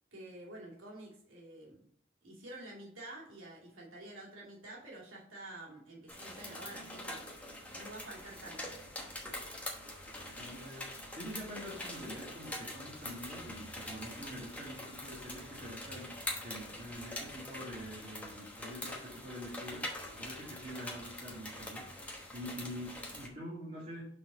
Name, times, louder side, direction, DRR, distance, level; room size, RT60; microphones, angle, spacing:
voice 1, 0.1-1.9 2.2-7.2 7.7-8.8, right 1 dB, 85° right, -4 dB, 2.5 m, -49 dB
sound 1, 6.1-23.3, left 1 dB, 5° left, 1.1 m, -44 dB
voice 2, 10.4-16.1 16.4-19.9 20.1-21.8 22.3-24.1, equal, 35° right, -7 dB, 1.9 m, -45 dB
5.9 x 4.1 x 5.4 m, 0.64 s
head